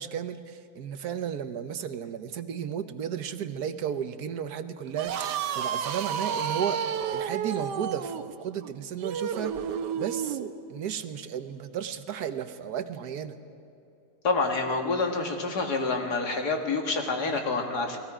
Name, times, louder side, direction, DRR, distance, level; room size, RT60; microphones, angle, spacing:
voice 1, 0.0-6.8 7.1-9.5 9.9-10.4 10.7-13.4, right 8 dB, 70° right, 10 dB, 1.4 m, -34 dB
sound 1, 4.9-10.5, right 8 dB, 85° right, 1.5 m, -31 dB
voice 2, 14.2-18.0, left 3 dB, 70° left, 3 dB, 2.5 m, -27 dB
30.0 x 20.0 x 5.0 m, 2.8 s
omnidirectional pair, 1.8 m